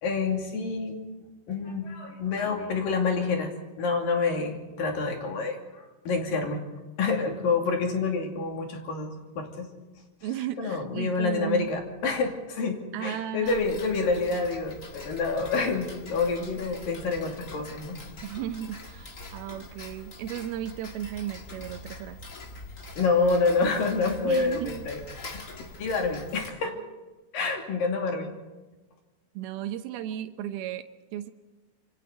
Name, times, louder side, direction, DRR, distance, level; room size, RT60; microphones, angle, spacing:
voice 1, 0.0-1.0 1.5-6.6 7.0-9.7 10.6-18.0 23.0-25.0 25.3-25.4 25.8-26.8 27.3-28.3, left 4 dB, 70° left, 2 dB, 4.4 m, -28 dB
voice 2, 10.2-11.7 12.9-13.6 18.2-22.2 24.2-24.9 29.3-31.3, right 11 dB, 90° right, 7 dB, 2.9 m, -35 dB
Tick-tock, 13.4-26.5, left 2 dB, 35° left, 1.4 m, -44 dB
26.5 x 25.0 x 4.1 m, 1.2 s
omnidirectional pair, 4.3 m